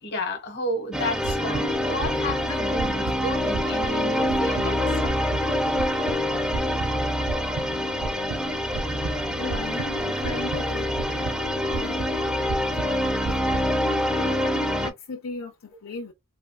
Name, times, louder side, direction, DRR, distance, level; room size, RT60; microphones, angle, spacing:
voice 1, 0.0-5.0 8.0-8.2, left 1 dB, 50° left, 1.2 m, -32 dB
sound 1, 0.9-14.9, left 1 dB, 5° right, 0.5 m, -26 dB
sound 2, 1.2-13.7, right 4 dB, 90° right, 0.4 m, -36 dB
voice 2, 9.4-13.6 14.1-16.1, left 3 dB, 70° left, 0.7 m, -38 dB
3.5 x 2.2 x 2.2 m
head